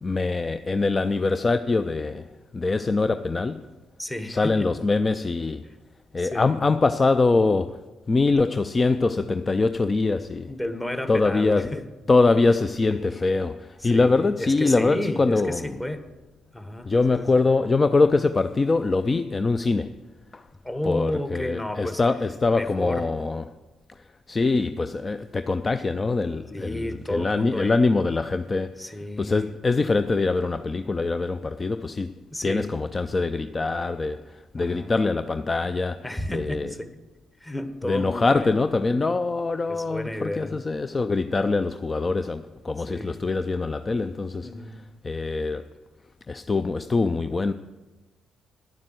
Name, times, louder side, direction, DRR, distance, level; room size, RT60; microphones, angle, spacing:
voice 1, 0.0-2.3 2.5-3.6 4.3-5.6 6.1-7.8 8.1-10.5 11.1-11.8 12.1-15.7 16.9-20.0 20.3-20.4 20.8-23.4 24.3-28.7 29.2-32.1 32.4-36.0 36.3-36.7 37.9-44.5 45.0-45.7 46.3-47.5, left 3 dB, 30° left, 11 dB, 0.4 m, -23 dB
voice 2, 4.0-4.7 6.2-6.6 10.5-11.8 13.8-16.0 16.5-17.3 20.6-22.0 22.5-23.1 26.5-27.9 28.8-29.4 32.3-32.7 34.6-34.9 36.0-36.9 37.4-38.5 39.7-40.6 42.9-43.2 44.4-44.8, left 1 dB, 15° left, 8 dB, 1.3 m, -32 dB
10.5 x 7.5 x 7.7 m, 1.2 s
figure-of-eight pair, 45°, 0 cm